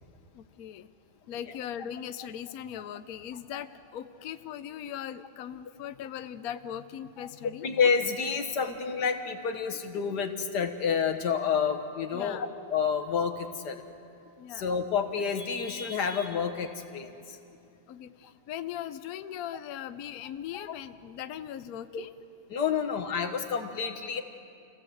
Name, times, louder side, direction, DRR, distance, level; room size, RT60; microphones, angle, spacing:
voice 1, 0.3-0.9 1.3-7.8 12.1-12.5 14.4-14.7 17.9-22.1, left 10 dB, 70° left, 10 dB, 0.8 m, -39 dB
voice 2, 7.6-13.8 14.6-17.4 21.9-22.0 22.5-24.2, left 6 dB, 55° left, 6 dB, 1.8 m, -29 dB
28.0 x 17.5 x 7.9 m, 2.5 s
omnidirectional pair, 2.3 m